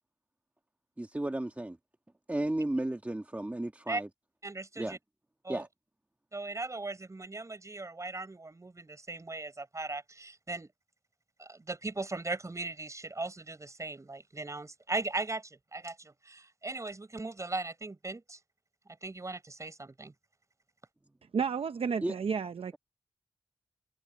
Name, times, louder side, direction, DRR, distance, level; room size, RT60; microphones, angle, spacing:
voice 1, 1.0-1.8 2.3-4.1 4.8-5.0 5.5-5.7 22.0-22.2, right 1 dB, 15° right, 1.5 m, -33 dB
voice 2, 4.4-5.0 5.4-5.7 6.3-10.7 11.4-18.4 19.0-20.1, right 2 dB, 30° right, 6.6 m, -38 dB
voice 3, 21.3-22.8, right 6 dB, 75° right, 0.7 m, -31 dB
wide cardioid pair, 110°, 10 cm